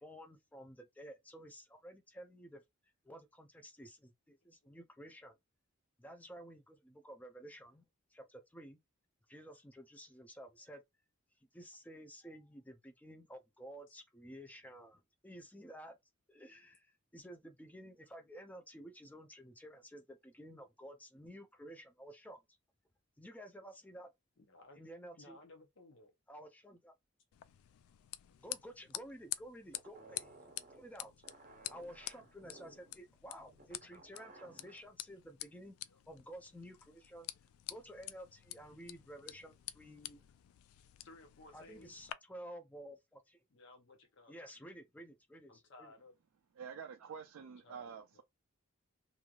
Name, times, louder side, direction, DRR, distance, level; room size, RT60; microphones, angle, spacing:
voice 1, 0.0-2.6 3.0-5.4 6.0-7.9 8.1-8.8 9.3-10.8 11.5-16.0 16.3-22.6 23.2-24.1 24.7-25.4 26.3-26.9 28.4-30.3 30.7-31.1 31.7-35.8 36.1-37.3 37.7-40.3 41.5-43.4 44.3-45.9, equal, 5° left, 0.4 m, -52 dB
voice 2, 24.4-24.8 25.2-26.1 35.9-36.0 41.0-42.0 43.5-44.4 45.5-46.1 47.4-48.2, left 2 dB, 60° left, 0.6 m, -58 dB
sound 1, 27.3-42.1, left 14 dB, 90° left, 0.3 m, -49 dB
sound 2, 29.7-34.9, right 2 dB, 40° right, 0.6 m, -58 dB
voice 3, 46.6-48.2, right 6 dB, 85° right, 0.4 m, -48 dB
3.1 x 2.5 x 2.3 m
head